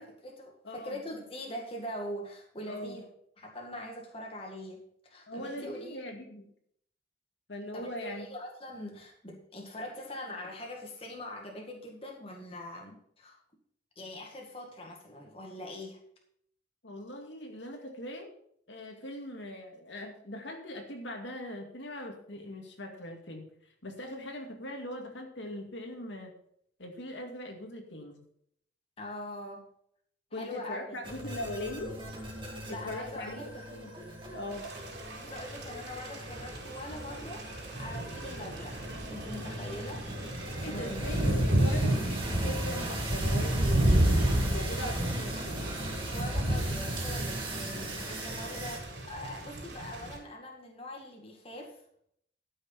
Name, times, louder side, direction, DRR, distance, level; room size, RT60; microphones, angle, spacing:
voice 1, 0.0-3.1 3.4-6.0 7.7-13.4 14.0-16.0 29.0-29.7 30.3-31.0 32.7-33.6 35.1-38.8 39.1-41.1 46.1-51.8, left 1 dB, 30° left, 0 dB, 1.9 m, -43 dB
voice 2, 0.6-1.0 2.7-3.0 5.3-6.5 7.5-8.3 16.8-18.4 18.7-23.5 23.8-26.3 26.8-28.2 30.3-32.0 32.7-33.9 34.3-34.7 40.6-44.0 44.4-45.7, left 1 dB, 70° left, 2 dB, 2.2 m, -41 dB
sound 1, 31.0-48.8, right 1 dB, 25° right, 2.8 m, -40 dB
Thunder / Rain, 34.5-50.2, right 1 dB, 60° right, 4.5 m, -31 dB
13.0 x 6.5 x 5.7 m, 0.67 s
head